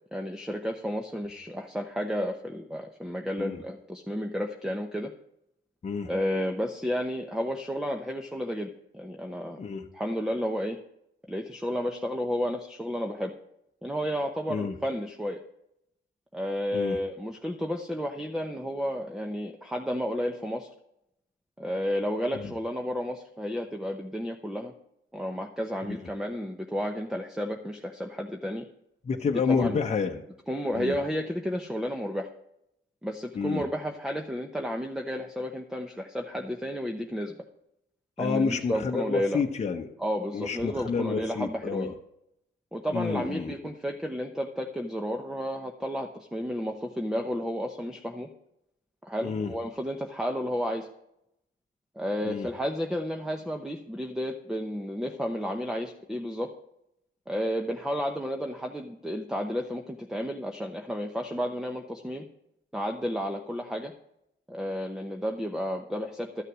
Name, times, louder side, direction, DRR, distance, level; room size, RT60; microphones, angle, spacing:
voice 1, 0.1-5.1 6.1-9.6 9.9-10.8 11.3-13.3 13.8-15.4 16.3-20.7 21.6-24.7 25.1-28.6 29.5-29.8 30.5-32.3 33.0-37.3 38.2-39.4 40.0-41.9 42.7-48.3 49.0-50.9 52.0-56.5 57.3-62.3 62.7-63.9 64.5-66.4, equal, 5° right, 3 dB, 0.9 m, -32 dB
voice 2, 29.0-30.3 30.8-31.0 33.3-33.6 38.2-39.9 40.3-41.9 42.9-43.5 49.2-49.5 52.2-52.5, left 5 dB, 35° left, 3 dB, 1.0 m, -29 dB
12.5 x 6.6 x 6.1 m, 0.79 s
cardioid pair, 90°, 20 cm